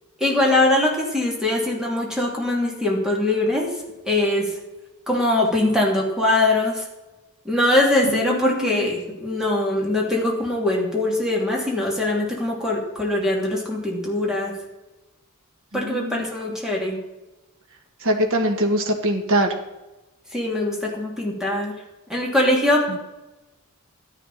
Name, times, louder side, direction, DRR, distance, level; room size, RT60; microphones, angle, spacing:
voice 1, 0.2-3.7 4.0-4.6 5.1-6.9 7.4-14.6 15.7-17.0 20.3-21.7 22.1-23.0, left 1 dB, 5° right, -2 dB, 2.7 m, -22 dB
voice 2, 8.0-8.9 15.7-16.3 18.0-19.6 22.9-23.0, equal, 65° right, 4 dB, 1.7 m, -23 dB
12.5 x 10.5 x 4.2 m, 1.0 s
head